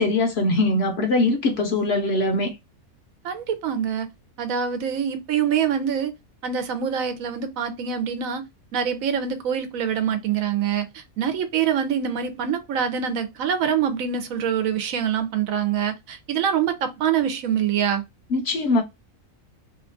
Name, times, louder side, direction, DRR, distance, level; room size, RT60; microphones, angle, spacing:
voice 1, 0.0-2.5 18.3-18.8, left 2 dB, 60° left, 0.7 m, -21 dB
voice 2, 3.2-4.1 4.4-6.1 6.4-8.4 8.7-18.0, right 8 dB, 80° right, 1.1 m, -25 dB
2.8 x 2.3 x 2.5 m
omnidirectional pair, 1.5 m